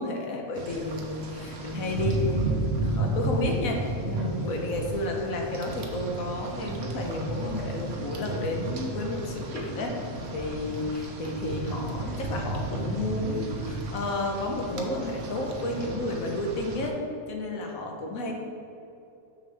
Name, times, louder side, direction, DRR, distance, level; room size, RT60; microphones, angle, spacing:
voice 1, 0.0-17.0 17.3-18.3, left 2 dB, 70° left, 1 dB, 1.4 m, -31 dB
Rain, 0.5-16.9, right 2 dB, 55° right, 0.9 m, -33 dB
6.5 x 6.5 x 3.4 m, 2.8 s
omnidirectional pair, 1.5 m